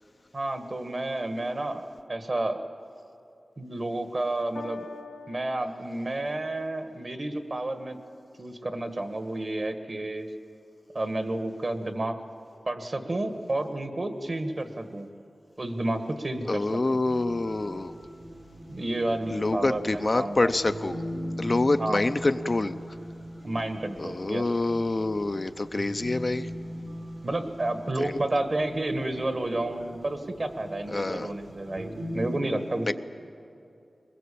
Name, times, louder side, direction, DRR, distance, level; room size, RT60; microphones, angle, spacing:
voice 1, 0.3-2.6 3.6-4.8 5.3-8.0 8.4-10.3 10.9-12.2 12.6-15.1 15.6-16.7 18.7-20.5 21.8-22.0 23.4-24.4 27.2-32.9, right 2 dB, 45° right, 7 dB, 1.6 m, -30 dB
Piano, 4.5-11.1 11.9-12.0, left 4 dB, 80° left, 2.1 m, -48 dB
voice 2, 16.5-17.9 19.3-21.0 21.4-22.8 24.0-26.5 28.0-28.1 30.9-31.3 32.9-33.0, left 2 dB, 40° left, 9 dB, 0.6 m, -26 dB
sound 1, 17.0-32.4, equal, 70° right, 4.6 m, -40 dB
21.5 x 21.0 x 8.5 m, 2.7 s
wide cardioid pair, 95°, 0 cm